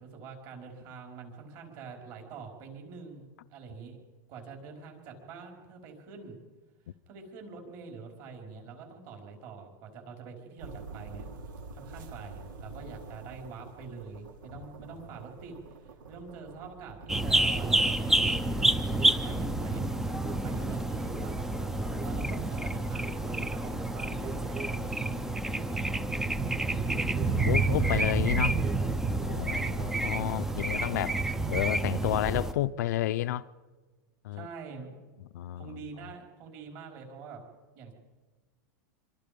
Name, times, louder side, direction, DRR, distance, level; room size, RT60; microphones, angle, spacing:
voice 1, 0.0-4.0 4.3-6.4 7.1-11.3 11.7-18.4 19.0-20.2 20.4-21.3 22.0-25.3 25.5-25.8 26.1-27.1 27.5-27.9 29.4-29.9 30.3-30.4 34.3-35.0 35.6-37.4 37.7-37.9, right 5 dB, 35° right, 5.1 m, -45 dB
sound 1, 10.6-24.7, right 3 dB, 85° right, 4.0 m, -49 dB
sound 2, 17.1-32.5, right 2 dB, 5° right, 0.6 m, -29 dB
voice 2, 27.4-28.6 29.2-31.2 31.5-33.5 34.2-34.5 35.3-35.8, left 14 dB, 60° left, 0.6 m, -31 dB
26.0 x 25.5 x 5.3 m
supercardioid pair, 170°, 11 cm